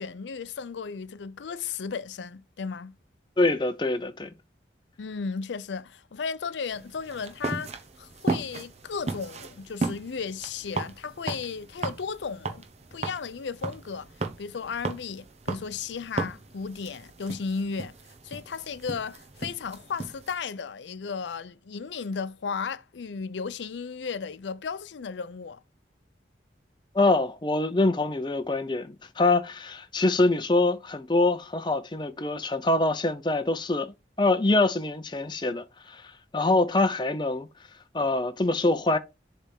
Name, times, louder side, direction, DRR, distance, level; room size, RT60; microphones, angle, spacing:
voice 1, 0.0-2.9 5.0-12.6 12.9-14.1 14.4-17.9 18.2-25.6, left 5 dB, 85° left, 0.5 m, -35 dB
voice 2, 3.4-4.3 26.9-37.5 37.9-39.0, left 2 dB, 25° left, 0.6 m, -25 dB
sound 1, 6.7-20.4, right 3 dB, 35° right, 0.9 m, -36 dB
7.2 x 3.4 x 5.3 m
head